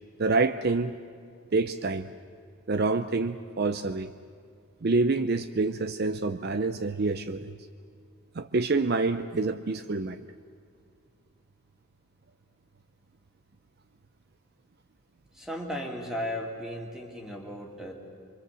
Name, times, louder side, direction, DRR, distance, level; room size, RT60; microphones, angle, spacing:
voice 1, 0.2-0.9 1.5-2.1 2.7-4.1 4.8-7.5 8.4-10.2, right 3 dB, 50° right, 11 dB, 0.6 m, -27 dB
voice 2, 15.3-17.9, equal, ahead, 1 dB, 2.7 m, -35 dB
25.0 x 24.5 x 7.6 m, 2.3 s
head